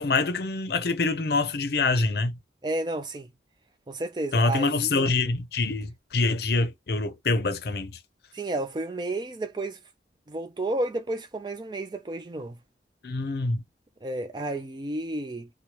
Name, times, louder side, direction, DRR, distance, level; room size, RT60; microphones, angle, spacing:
voice 1, 0.0-2.4 4.3-7.9 13.0-13.6, left 3 dB, 60° left, 0.6 m, -25 dB
voice 2, 2.6-3.3 3.9-5.1 8.3-9.8 10.3-12.6 14.0-15.5, right 2 dB, 25° right, 0.3 m, -31 dB
3.1 x 2.2 x 2.9 m
head